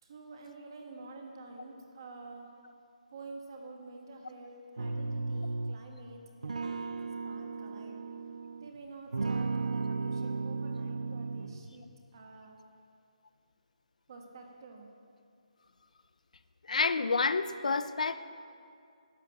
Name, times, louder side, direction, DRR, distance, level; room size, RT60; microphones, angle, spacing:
voice 1, 0.0-2.5 3.1-8.0 8.6-12.6 14.1-14.9, right 3 dB, 35° right, 2 dB, 1.5 m, -49 dB
sound 1, 4.8-5.9 6.4-8.7 9.1-11.7, right 3 dB, 90° right, 0.6 m, -35 dB
voice 2, 16.7-18.1, left 4 dB, 80° left, 13 dB, 0.6 m, -28 dB
12.0 x 8.4 x 7.1 m, 2.3 s
hypercardioid pair, 175°, 4 cm